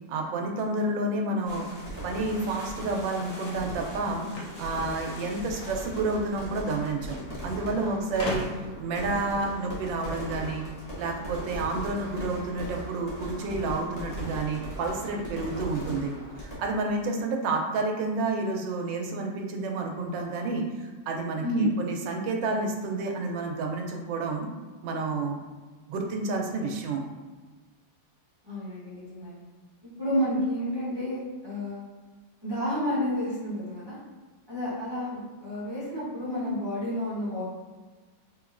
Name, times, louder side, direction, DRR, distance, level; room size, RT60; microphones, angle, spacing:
voice 1, 0.1-1.7 2.0-7.2 7.4-8.5 8.8-10.7 10.9-16.1 16.4-24.5 24.8-25.4 25.9-27.0, right 3 dB, 80° right, 2 dB, 1.3 m, -30 dB
sound 1, 1.4-16.5, equal, 25° left, 1.0 m, -39 dB
sound 2, 4.3-5.7 6.8-6.9 7.1-7.2 8.2-8.8, left 2 dB, 90° left, 1.5 m, -36 dB
voice 2, 7.8-8.1 21.4-21.8 28.4-29.4 30.0-31.8 32.4-34.0 34.5-37.4, equal, 20° right, -11 dB, 0.8 m, -30 dB
3.6 x 2.9 x 2.5 m, 1.3 s
omnidirectional pair, 2.0 m